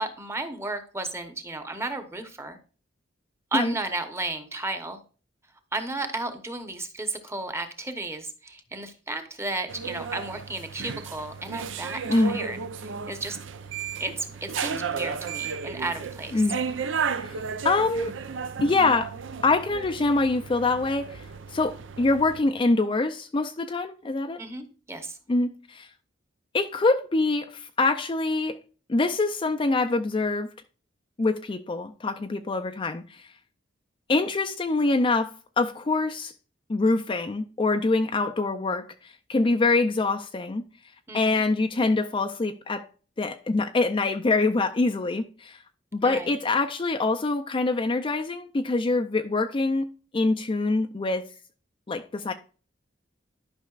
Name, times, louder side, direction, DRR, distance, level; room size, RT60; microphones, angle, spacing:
voice 1, 0.0-2.6 3.5-5.0 5.7-12.6 13.1-13.4 14.0-16.4 24.4-25.2 41.1-41.4 46.0-46.3, right 2 dB, 15° right, 0.9 m, -33 dB
sound 1, 9.7-22.4, right 6 dB, 75° right, 0.6 m, -34 dB
voice 2, 12.1-12.4 16.3-16.6 17.2-18.1 18.6-19.1 19.4-24.4 25.3-25.9 26.5-28.6 28.9-30.5 31.2-33.3 34.1-36.3 36.7-40.6 41.1-42.9 43.2-45.6 45.9-51.2 51.9-52.3, left 3 dB, 25° left, 0.4 m, -25 dB
11.5 x 5.5 x 2.4 m
head